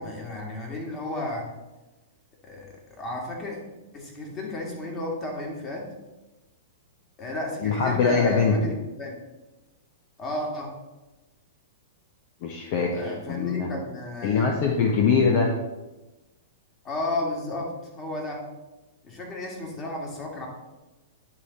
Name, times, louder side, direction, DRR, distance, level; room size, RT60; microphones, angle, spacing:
voice 1, 0.0-1.5 2.4-2.7 3.0-3.6 3.9-5.9 7.2-9.2 10.2-10.7 12.9-14.6 16.8-18.4 19.0-20.5, left 1 dB, 25° left, -1 dB, 2.2 m, -33 dB
voice 2, 7.6-8.7 12.4-13.7 14.2-15.5, left 5 dB, 50° left, 1 dB, 0.8 m, -23 dB
10.0 x 3.5 x 4.1 m, 1.1 s
hypercardioid pair, 115°, 0 cm